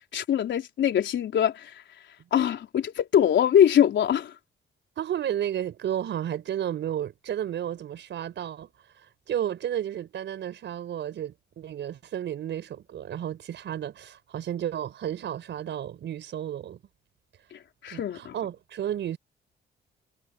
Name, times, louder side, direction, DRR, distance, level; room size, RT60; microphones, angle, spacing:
voice 1, 0.1-1.7 2.3-4.3 17.8-18.3, left 9 dB, 70° left, 4.2 m, -22 dB
voice 2, 5.0-16.8 17.9-19.2, right 10 dB, 65° right, 4.5 m, -32 dB
cardioid pair, 90°, 20 cm